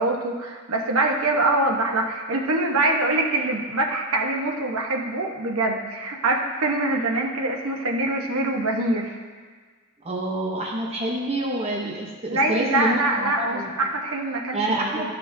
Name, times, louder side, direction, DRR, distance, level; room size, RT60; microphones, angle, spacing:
voice 1, 0.0-9.2 12.3-15.1, right 2 dB, 75° right, 1 dB, 1.0 m, -24 dB
voice 2, 10.0-13.7 14.5-15.1, right 1 dB, 30° right, -2 dB, 0.8 m, -27 dB
13.0 x 5.5 x 2.7 m, 1.5 s
head